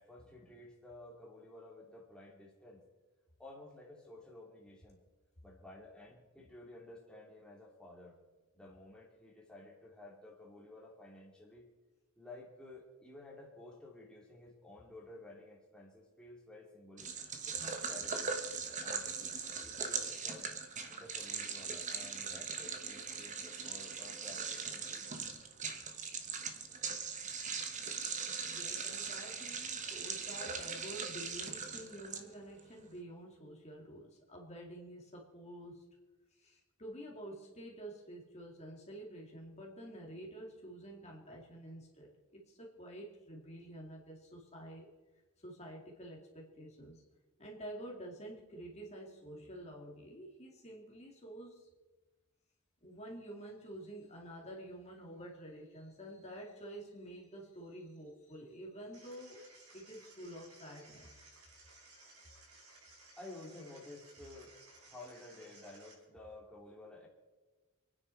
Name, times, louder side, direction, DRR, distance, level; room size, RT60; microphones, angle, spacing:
voice 1, 0.0-2.8 3.4-5.0 5.4-8.2 8.5-11.7 12.2-17.1 17.5-19.4 19.6-20.5 20.9-25.3 63.2-67.1, left 2 dB, 5° left, -4 dB, 2.6 m, -53 dB
sound 1, 17.0-32.6, right 5 dB, 35° right, 1.2 m, -40 dB
voice 2, 28.5-35.8 36.3-44.9 45.4-47.0 47.4-51.7 52.8-61.2, right 1 dB, 30° left, -1 dB, 2.4 m, -49 dB
sound 2, 58.9-65.9, right 2 dB, 75° right, 4.9 m, -59 dB
26.5 x 9.9 x 4.5 m, 1.2 s
head